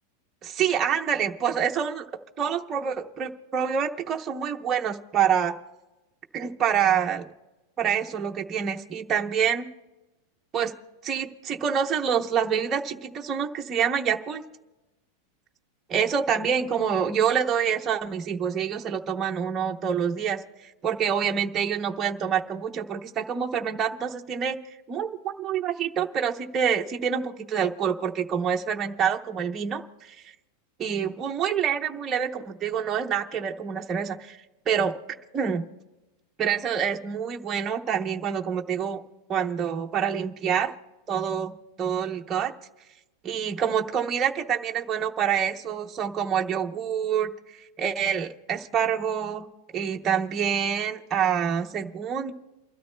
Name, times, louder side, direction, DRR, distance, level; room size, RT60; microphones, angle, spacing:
voice 1, 0.4-2.1 2.4-5.5 6.3-7.3 7.8-9.7 10.5-10.7 11.0-14.4 15.9-24.6 24.9-30.1 30.8-34.4 34.7-34.9 35.3-35.6 36.4-39.0 39.3-40.7 41.1-42.5 43.2-49.5 49.7-52.3, right 8 dB, 15° right, 2 dB, 0.7 m, -27 dB
29.5 x 12.5 x 2.2 m, 1.1 s
supercardioid pair, 175°, 0 cm